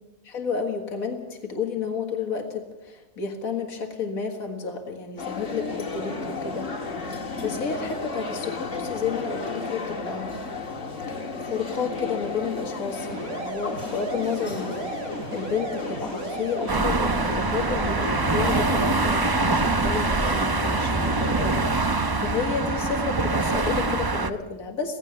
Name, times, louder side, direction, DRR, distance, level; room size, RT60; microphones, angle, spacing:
voice 1, 0.2-6.7 7.1-10.3 11.1-25.0, left 5 dB, 85° left, 5 dB, 2.2 m, -31 dB
sound 1, 5.2-21.6, left 3 dB, 60° left, 2.2 m, -34 dB
sound 2, 13.1-18.9, right 2 dB, 90° right, 3.2 m, -35 dB
sound 3, 16.7-24.3, right 3 dB, 25° right, 0.6 m, -24 dB
17.0 x 16.0 x 9.4 m, 1.1 s
omnidirectional pair, 1.5 m